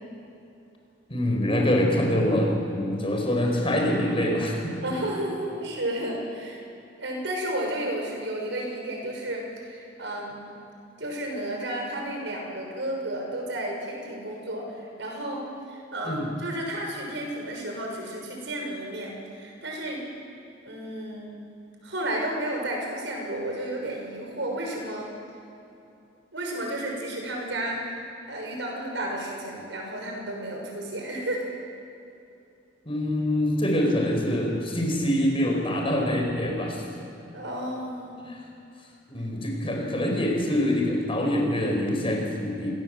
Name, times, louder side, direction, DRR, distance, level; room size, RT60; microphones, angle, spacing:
voice 1, 1.1-4.7 16.0-16.3 32.8-36.8 38.2-38.4 39.1-42.7, left 1 dB, 30° left, 0 dB, 5.0 m, -25 dB
voice 2, 4.8-6.6 7.0-10.4 11.0-14.7 15.0-20.0 20.6-21.4 21.8-25.1 26.3-28.0 28.3-31.5 37.3-38.2, right 1 dB, 75° right, 0 dB, 6.1 m, -32 dB
27.5 x 18.5 x 7.8 m, 2.7 s
head